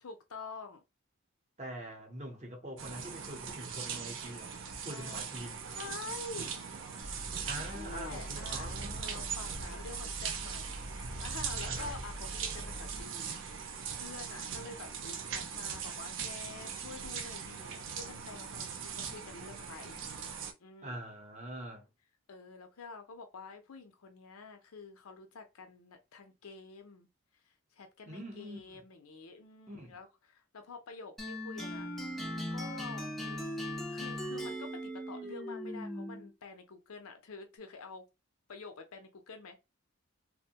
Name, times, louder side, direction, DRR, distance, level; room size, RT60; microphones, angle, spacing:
voice 1, 0.0-0.8 4.8-5.3 5.8-6.7 7.6-8.7 9.0-20.0 20.6-21.0 22.3-27.1 27.8-33.4 33.9-38.1 38.5-39.6, left 4 dB, 85° left, 0.6 m, -48 dB
voice 2, 1.6-4.6 4.8-5.6 7.4-9.3 11.6-11.9 20.8-21.9 28.1-28.8 29.7-30.0, right 1 dB, 30° right, 0.7 m, -44 dB
sound 1, 2.8-20.5, right 7 dB, 60° right, 0.4 m, -40 dB
sound 2, 7.0-13.0, equal, 85° right, 0.9 m, -44 dB
sound 3, 31.2-36.3, equal, ahead, 0.4 m, -39 dB
2.6 x 2.1 x 2.7 m
head